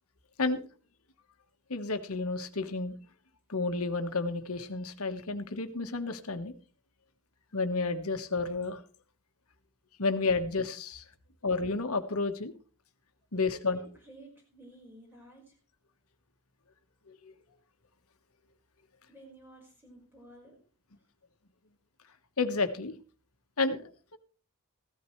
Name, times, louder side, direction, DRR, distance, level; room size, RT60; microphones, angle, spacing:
voice 1, 1.7-3.0 3.5-6.5 7.5-8.8 10.0-11.0 11.4-12.5 13.3-13.8 17.1-17.3 22.4-22.9 23.6-24.2, left 3 dB, 70° left, 9 dB, 1.4 m, -31 dB
voice 2, 13.5-15.6 17.5-17.6 19.1-20.6, right 1 dB, 10° right, -1 dB, 4.9 m, -53 dB
15.5 x 13.0 x 3.2 m, 0.38 s
head